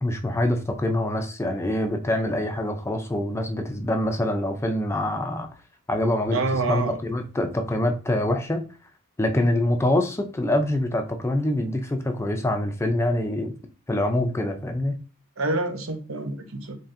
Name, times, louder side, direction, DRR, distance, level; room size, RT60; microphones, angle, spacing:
voice 1, 0.0-5.5 5.9-8.6 9.2-13.5 13.9-15.0, left 1 dB, 15° left, 0.4 m, -25 dB
voice 2, 6.3-7.0 15.4-16.8, right 3 dB, 90° right, 0.8 m, -27 dB
4.1 x 3.3 x 2.5 m
head